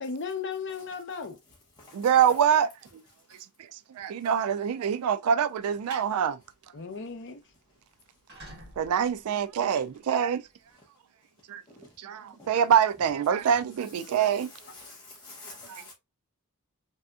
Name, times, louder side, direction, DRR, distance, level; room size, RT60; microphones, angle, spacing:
voice 1, 0.0-1.4 6.7-7.4, left 5 dB, 55° left, 0.6 m, -35 dB
voice 2, 1.9-2.7 4.0-6.4 8.8-10.4 11.5-11.6 12.0-14.5 15.7-15.8, right 8 dB, 70° right, 0.3 m, -25 dB
sound 1, 5.6-6.1 6.5-6.8 7.1-7.2 7.4-7.5 8.1-10.6, right 2 dB, 50° right, 1.7 m, -49 dB
voice 3, 14.7-15.9, left 3 dB, 20° left, 0.7 m, -47 dB
3.4 x 2.7 x 2.3 m
head